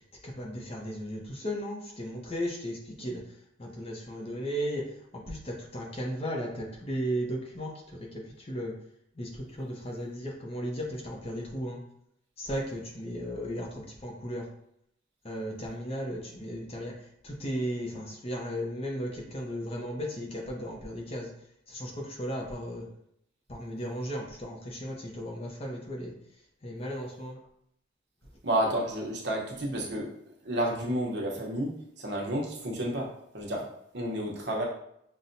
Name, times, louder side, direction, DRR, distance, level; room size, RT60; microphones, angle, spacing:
voice 1, 0.2-3.2 3.6-8.7 9.2-11.8 12.4-14.5 15.2-17.0 17.2-21.3 21.7-22.9 23.5-26.1 26.6-27.4, equal, 30° left, 0 dB, 0.6 m, -35 dB
voice 2, 28.4-30.1 30.4-33.7 33.9-34.6, right 1 dB, 65° right, -2 dB, 0.9 m, -31 dB
5.6 x 2.2 x 2.6 m, 0.74 s
head